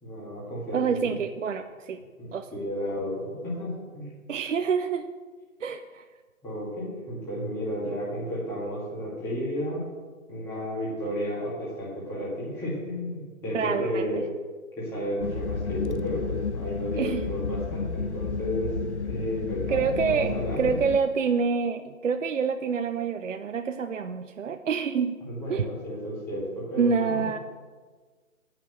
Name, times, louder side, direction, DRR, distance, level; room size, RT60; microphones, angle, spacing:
voice 1, 0.0-0.9 2.2-4.0 6.4-9.8 10.3-14.2 14.8-18.7 19.0-20.8 25.2-27.3, equal, 5° left, -8 dB, 2.1 m, -32 dB
voice 2, 0.7-2.0 2.3-2.5 4.3-5.1 5.6-6.0 13.5-14.1 17.0-17.2 19.7-25.2 25.5-25.7 26.8-27.4, right 6 dB, 60° right, 8 dB, 0.6 m, -27 dB
sound 1, 15.2-21.0, left 5 dB, 55° left, 0.6 m, -32 dB
8.6 x 6.0 x 7.9 m, 1.4 s
figure-of-eight pair, 160°, 42 cm